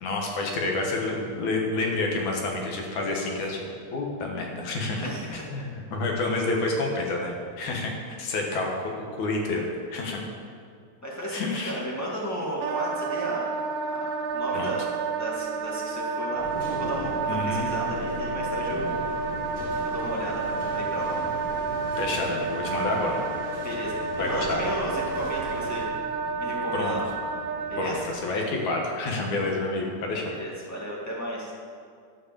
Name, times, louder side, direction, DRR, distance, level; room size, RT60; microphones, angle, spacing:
voice 1, 0.0-3.6 3.9-7.9 8.2-10.2 11.3-11.8 14.5-14.7 17.3-17.7 22.0-23.2 24.2-24.6 26.7-26.9 27.8-30.3, left 2 dB, 70° left, 0 dB, 2.7 m, -29 dB
voice 2, 11.0-13.5 13.9-18.9 19.8-21.2 23.6-25.9 26.4-27.1 27.7-28.1 30.3-31.5, equal, 10° left, -5 dB, 1.0 m, -34 dB
Wind instrument woodwind instrument, 12.6-27.9, right 4 dB, 75° right, 2.3 m, -30 dB
sound 1, 14.2-28.1, right 1 dB, 40° left, 3.5 m, -42 dB
sound 2, 16.4-25.8, equal, 30° right, 2.9 m, -41 dB
12.0 x 5.2 x 7.3 m, 2.3 s
omnidirectional pair, 3.6 m